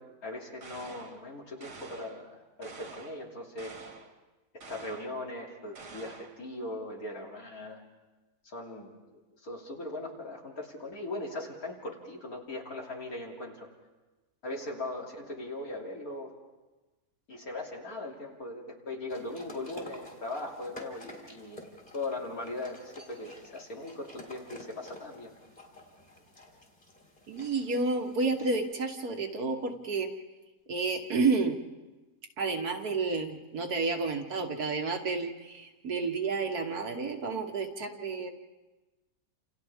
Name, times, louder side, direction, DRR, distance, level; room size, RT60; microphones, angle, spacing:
voice 1, 0.0-3.8 4.5-7.8 8.4-13.7 14.4-16.3 17.3-21.7 21.9-25.3, left 2 dB, 60° left, -2 dB, 3.4 m, -39 dB
sound 1, 0.6-1.2 1.6-2.2 2.6-3.2 3.6-4.1 4.6-5.2 5.8-6.4, right 4 dB, 80° right, 2.6 m, -47 dB
sound 2, 19.1-28.5, left 1 dB, 25° left, 3.7 m, -50 dB
voice 2, 27.3-30.1 30.7-31.6 32.4-38.3, right 4 dB, 65° right, 4 dB, 1.9 m, -30 dB
29.5 x 28.0 x 3.6 m, 1.2 s
omnidirectional pair, 1.8 m